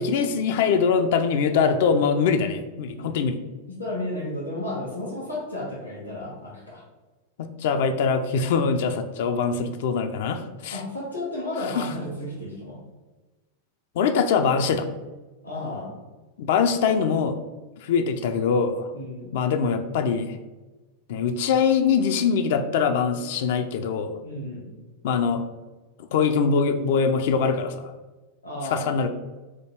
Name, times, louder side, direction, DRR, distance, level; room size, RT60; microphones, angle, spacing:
voice 1, 0.0-3.4 7.4-10.8 11.6-11.9 14.0-14.9 16.4-17.4 17.8-18.9 19.3-20.4 21.1-24.1 25.0-25.4 26.0-27.9 28.7-29.1, left 6 dB, 55° left, 8 dB, 0.3 m, -23 dB
voice 2, 3.7-6.8 10.7-12.8 15.4-16.0 18.2-18.3 18.9-19.3 24.2-24.7 28.4-28.9, left 1 dB, 80° left, -3 dB, 1.0 m, -33 dB
4.6 x 2.3 x 3.2 m, 1.2 s
figure-of-eight pair, 90°, 0 cm